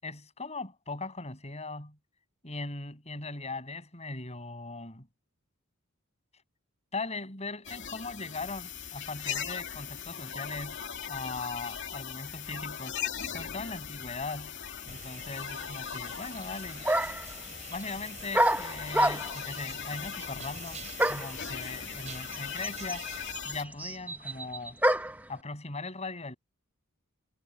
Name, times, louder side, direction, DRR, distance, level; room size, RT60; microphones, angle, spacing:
voice 1, 0.0-2.0 2.4-5.1 6.9-10.8 11.1-13.0 13.3-14.6 14.9-16.9 17.7-23.1 23.5-24.8 25.3-26.4, left 3 dB, 30° left, 7.4 m, -39 dB
sound 1, 7.6-23.6, left 9 dB, 60° left, 2.5 m, -39 dB
sound 2, 14.9-23.3, right 5 dB, 35° right, 4.2 m, -47 dB
sound 3, 16.4-16.5 16.8-17.3 18.3-19.5 21.0-21.4 22.3-22.4 22.6-25.2, right 1 dB, 10° right, 1.3 m, -27 dB
head